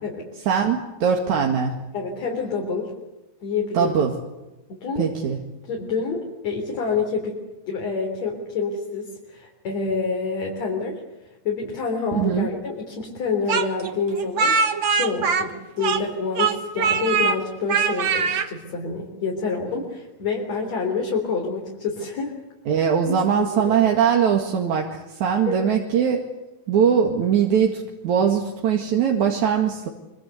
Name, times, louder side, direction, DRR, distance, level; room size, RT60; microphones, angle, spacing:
voice 1, 0.5-1.8 3.8-4.1 5.0-5.4 12.1-12.5 22.7-26.3 26.7-29.9, right 7 dB, 75° right, 1 dB, 3.4 m, -21 dB
voice 2, 1.9-2.9 3.4-3.9 4.7-5.1 5.6-7.4 7.7-11.0 11.4-14.6 14.9-22.4 23.0-23.9 25.4-25.6, left 4 dB, 65° left, 0 dB, 5.0 m, -27 dB
Speech, 13.5-16.1 16.4-17.4 17.7-18.5, right 5 dB, 45° right, 2.1 m, -22 dB
25.5 x 25.0 x 8.0 m, 1.0 s
omnidirectional pair, 3.3 m